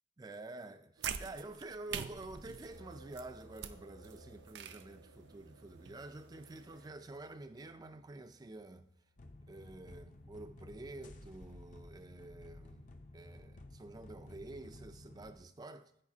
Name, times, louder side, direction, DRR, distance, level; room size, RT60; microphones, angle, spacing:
voice 1, 0.2-8.9 9.5-16.0, right 2 dB, 20° right, 0.3 m, -49 dB
sound 1, 1.0-6.9, right 7 dB, 80° right, 0.5 m, -46 dB
sound 2, 2.7-9.2, right 1 dB, 70° left, 1.3 m, -60 dB
sound 3, 9.2-15.4, left 2 dB, 45° left, 0.7 m, -54 dB
11.0 x 8.7 x 2.7 m
head